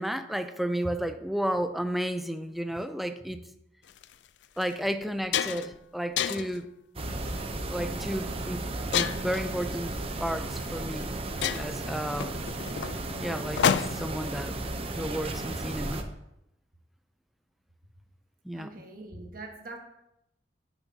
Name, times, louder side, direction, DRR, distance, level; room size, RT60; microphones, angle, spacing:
voice 1, 0.0-3.4 4.6-6.7 7.7-8.6 8.9-11.1 11.4-12.4 13.2-14.6 14.9-16.0 18.4-18.7, equal, ahead, 9 dB, 0.4 m, -32 dB
sound 1, 3.9-4.0 4.6-4.7 5.0-5.8 6.2-6.6 7.3-7.6 8.9-9.5 10.6-10.7 11.0-11.1 11.4-14.2, left 8 dB, 80° left, 0.4 m, -29 dB
sound 2, 7.0-16.0, right 2 dB, 35° right, 0.7 m, -34 dB
voice 2, 18.5-19.8, right 2 dB, 55° right, 1 dB, 1.5 m, -43 dB
10.5 x 6.9 x 2.8 m, 0.83 s
head